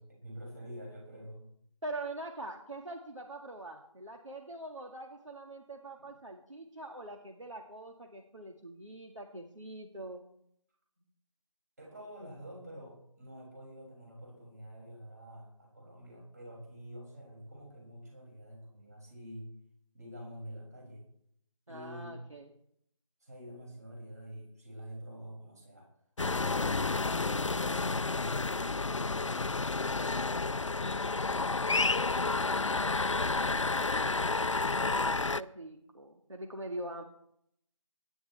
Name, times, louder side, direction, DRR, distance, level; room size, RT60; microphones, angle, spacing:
voice 1, 0.0-1.5 6.0-6.1 11.8-19.5 19.9-21.0 21.7-22.2 23.2-25.9 26.2-29.5 30.0-32.3 32.8-34.4, equal, 30° right, -1 dB, 6.4 m, -48 dB
voice 2, 1.8-10.2 21.7-22.5 35.3-37.0, right 2 dB, 65° right, 2 dB, 2.1 m, -43 dB
sound 1, 26.2-35.4, left 3 dB, 65° left, 0.6 m, -30 dB
22.5 x 11.0 x 3.4 m, 0.71 s
figure-of-eight pair, 175°, 17 cm